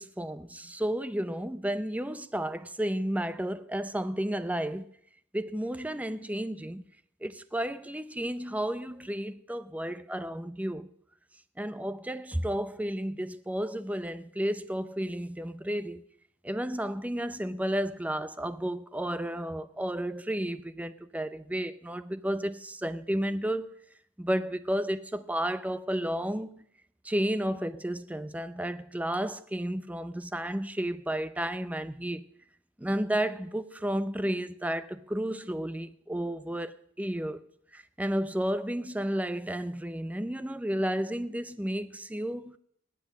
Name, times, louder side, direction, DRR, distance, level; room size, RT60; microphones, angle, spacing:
voice 1, 0.0-4.9 5.3-6.8 7.2-10.9 11.6-16.0 16.4-23.7 24.2-26.6 27.0-32.2 32.8-37.5 37.7-42.6, right 1 dB, 5° right, 0.6 m, -32 dB
20.0 x 7.8 x 6.2 m
head